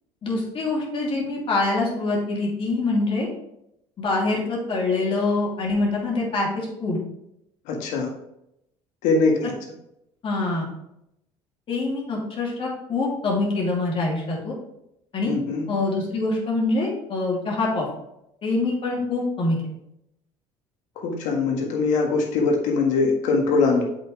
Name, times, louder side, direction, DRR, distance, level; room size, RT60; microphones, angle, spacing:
voice 1, 0.2-3.3 4.0-7.0 9.4-9.5 10.2-10.7 11.7-14.5 15.1-15.3 15.7-17.8 18.4-19.6, left 2 dB, 45° left, -3 dB, 2.8 m, -25 dB
voice 2, 7.7-8.1 9.0-9.5 15.3-15.7 20.9-23.8, left 4 dB, 75° left, 1 dB, 1.6 m, -22 dB
7.4 x 5.5 x 3.3 m, 0.82 s
supercardioid pair, 85°, 12 cm